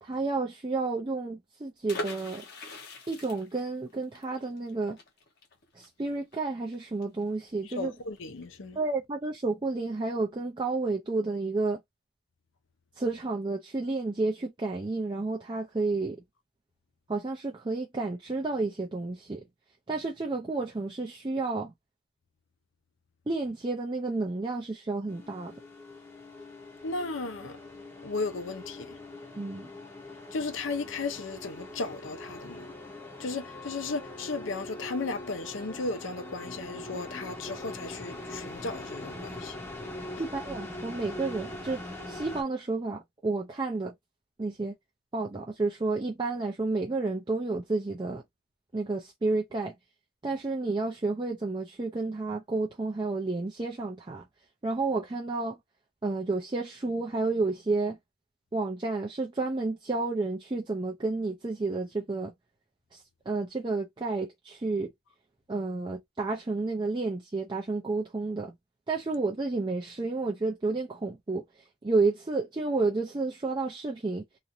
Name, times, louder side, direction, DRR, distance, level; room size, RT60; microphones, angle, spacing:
voice 1, 0.0-2.4 3.1-5.0 5.8-7.9 8.8-11.8 13.0-16.2 17.1-19.4 19.9-21.7 23.3-25.5 29.4-29.7 40.2-43.9 44.4-44.7 45.1-48.2 48.7-49.7 50.2-54.2 54.6-55.6 56.0-58.0 58.5-62.3 63.3-64.9 65.5-68.5 68.9-71.4 71.8-74.2, right 3 dB, 20° right, 0.4 m, -31 dB
sound 1, 1.9-7.5 7.8-7.9 8.2-8.5, left 1 dB, 50° left, 0.9 m, -42 dB
voice 2, 7.6-8.8 26.8-27.6 28.0-29.0 30.3-32.7 33.2-39.6, left 3 dB, 65° left, 0.6 m, -35 dB
sound 2, 25.1-42.4, left 2 dB, 10° left, 0.8 m, -42 dB
2.9 x 2.5 x 2.6 m
head